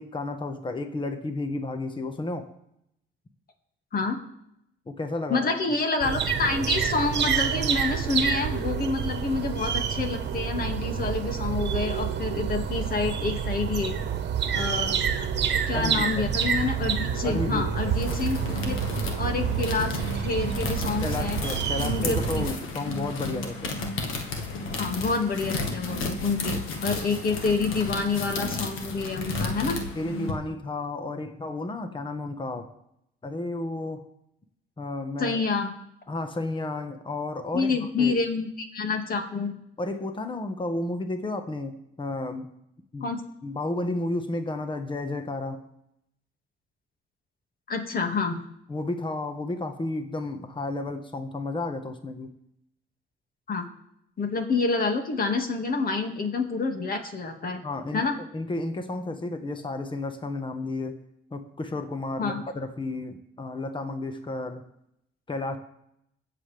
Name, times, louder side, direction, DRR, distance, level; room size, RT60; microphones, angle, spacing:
voice 1, 0.0-2.5 4.9-5.5 15.7-16.2 17.2-17.9 21.0-23.7 29.9-32.7 33.2-34.0 34.8-35.4 36.1-38.2 39.8-42.5 42.9-43.1 43.4-45.6 48.7-52.3 57.6-61.0 61.3-64.6 65.3-65.6, left 2 dB, 25° left, 7 dB, 1.4 m, -32 dB
voice 2, 5.3-13.9 14.5-15.0 15.7-18.7 19.2-21.4 21.8-22.5 24.8-29.8 35.2-35.7 37.5-39.5 43.0-43.2 47.7-48.4 53.5-53.6 54.2-57.6 57.9-58.2 62.2-62.4, left 4 dB, 50° left, 4 dB, 2.2 m, -28 dB
sound 1, 6.0-22.5, right 7 dB, 60° right, 1.2 m, -28 dB
sound 2, 17.7-30.3, left 3 dB, 85° left, 1.7 m, -33 dB
22.0 x 7.9 x 3.5 m, 0.78 s
cardioid pair, 90°, 20 cm